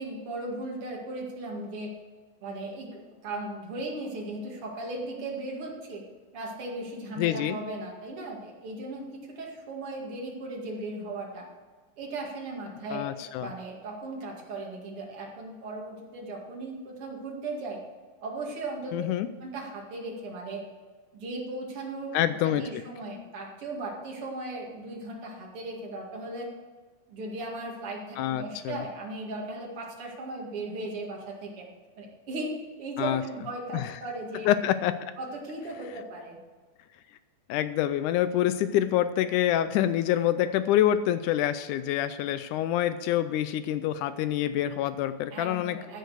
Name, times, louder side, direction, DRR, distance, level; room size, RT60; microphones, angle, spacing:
voice 1, 0.0-1.9 2.4-6.0 6.3-11.5 12.0-13.1 13.4-17.8 18.2-19.1 19.4-20.6 21.1-26.5 27.1-31.7 32.0-34.5 35.2-36.4 45.3-46.0, right 2 dB, 45° right, -1 dB, 2.8 m, -37 dB
voice 2, 7.2-7.6 12.9-13.5 18.9-19.3 22.1-22.8 28.2-28.8 33.0-33.2 33.7-33.9 34.4-35.1 37.5-45.8, left 12 dB, 85° left, 12 dB, 1.8 m, -26 dB
15.0 x 6.5 x 6.4 m, 1.4 s
omnidirectional pair, 4.0 m